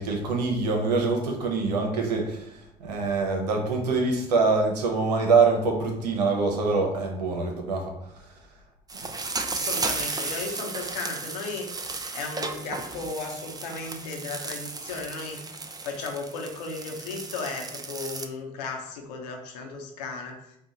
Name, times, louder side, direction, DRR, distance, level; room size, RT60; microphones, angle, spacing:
voice 1, 0.0-8.3 9.5-9.6, right 4 dB, 85° right, 2 dB, 0.8 m, -25 dB
sound 1, 8.9-18.3, right 3 dB, 20° right, 0.5 m, -34 dB
voice 2, 9.5-15.4 15.8-20.4, left 4 dB, 80° left, 2 dB, 0.9 m, -35 dB
4.6 x 2.4 x 3.9 m, 0.78 s
hypercardioid pair, 60°, 21 cm